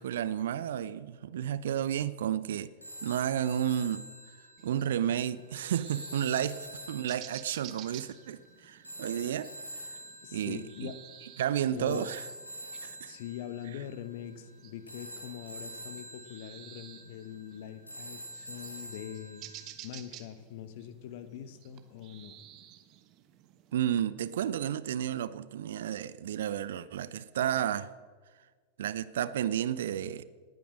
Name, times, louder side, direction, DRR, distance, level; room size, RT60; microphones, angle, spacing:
voice 1, 0.0-2.7 3.0-4.1 4.6-9.5 9.8-10.0 10.3-10.9 11.4-12.2 12.8-13.1 23.7-27.9 28.8-30.2, right 10 dB, 60° right, 0.6 m, -32 dB
sound 1, 2.8-19.7, right 1 dB, 85° left, 2.4 m, -47 dB
sound 2, 4.6-24.0, right 12 dB, 40° right, 1.1 m, -53 dB
voice 2, 10.2-11.0 11.7-12.1 13.1-19.4 19.8-22.4, left 10 dB, 50° left, 1.1 m, -43 dB
18.5 x 9.3 x 6.4 m
figure-of-eight pair, 90°, 0 cm